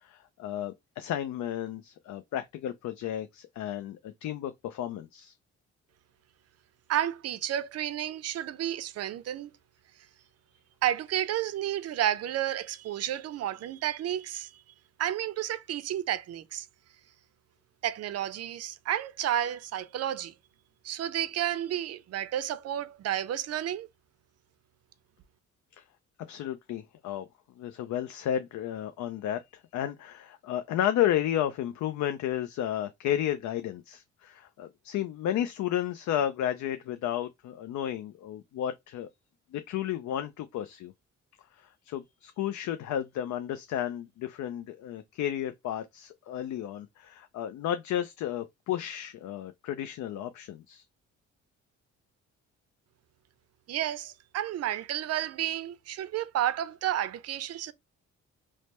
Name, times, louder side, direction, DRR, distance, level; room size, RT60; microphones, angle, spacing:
voice 1, 0.0-5.3 26.3-27.2 27.6-29.4 29.7-39.1 39.5-40.9 41.6-50.8, left 11 dB, 70° left, 0.5 m, -32 dB
voice 2, 6.9-9.5 10.8-14.5 15.0-16.7 17.8-20.3 20.8-23.9 53.7-57.7, right 11 dB, 55° right, 0.5 m, -31 dB
3.2 x 2.0 x 4.2 m
cardioid pair, 90°, 30 cm